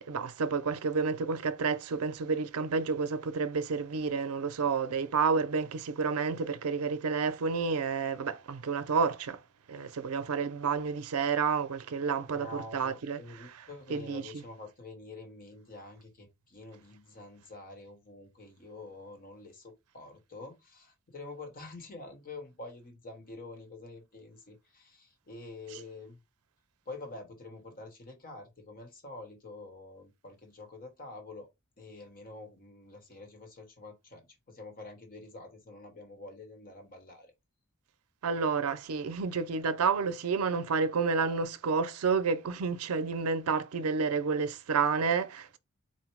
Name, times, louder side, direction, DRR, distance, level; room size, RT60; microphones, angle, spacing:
voice 1, 0.1-9.4 9.7-13.2 13.9-14.2 38.2-45.6, right 5 dB, 90° right, 0.5 m, -30 dB
voice 2, 12.3-26.2 26.9-31.5 31.8-37.3, left 2 dB, 40° left, 1.1 m, -47 dB
4.3 x 2.1 x 4.4 m
head